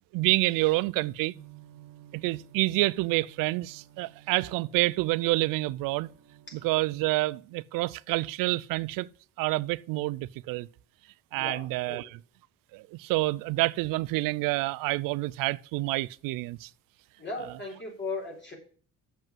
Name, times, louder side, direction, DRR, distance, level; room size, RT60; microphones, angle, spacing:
voice 1, 0.1-1.3 2.1-6.1 6.5-9.1 9.4-10.7 11.3-12.2 12.7-16.7, right 20 dB, 85° right, 0.5 m, -28 dB
sound 1, 1.3-7.0, right 11 dB, 55° right, 1.8 m, -54 dB
voice 2, 11.3-12.1 17.2-18.5, left 3 dB, 35° left, 3.8 m, -37 dB
7.4 x 5.5 x 7.4 m
cardioid pair, 90°, 32 cm